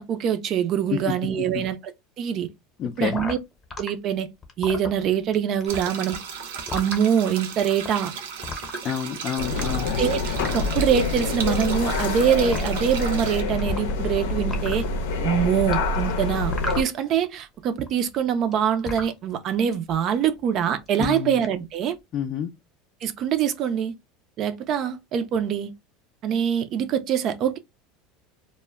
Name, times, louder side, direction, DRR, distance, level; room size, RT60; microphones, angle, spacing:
voice 1, 0.0-1.8 2.2-2.5 3.0-3.4 3.8-4.3 4.6-6.2 6.7-8.1 10.0-14.9 15.2-22.0 23.0-23.9 24.4-25.7 26.2-27.6, right 8 dB, 45° right, 0.4 m, -24 dB
voice 2, 0.9-1.6 2.8-3.2 8.8-9.9 21.0-21.4 22.1-22.5, left 9 dB, 40° left, 0.3 m, -29 dB
sound 1, 3.1-3.9 4.4-5.3 5.6-7.1 7.7-7.9 8.4-9.2 9.5-10.7 11.6-12.2 12.5-12.6 13.6-14.1 14.4-14.9 15.7-17.3 17.6-19.1 19.7-20.0 20.2-20.6 20.9-21.5, left 3 dB, 20° left, 0.7 m, -34 dB
sound 2, 5.7-13.4, right 7 dB, 90° right, 0.6 m, -35 dB
sound 3, 9.4-16.8, left 3 dB, 85° left, 0.6 m, -26 dB
2.1 x 2.1 x 3.3 m
supercardioid pair, 130°, 0 cm